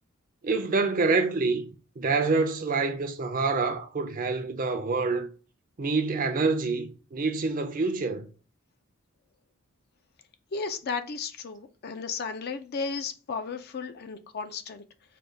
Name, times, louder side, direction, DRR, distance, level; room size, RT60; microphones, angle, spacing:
voice 1, 0.4-1.6 2.0-5.3 5.8-8.3, right 4 dB, 40° right, 0.6 m, -26 dB
voice 2, 10.5-14.8, left 5 dB, 45° left, 0.4 m, -34 dB
5.1 x 2.3 x 3.4 m
head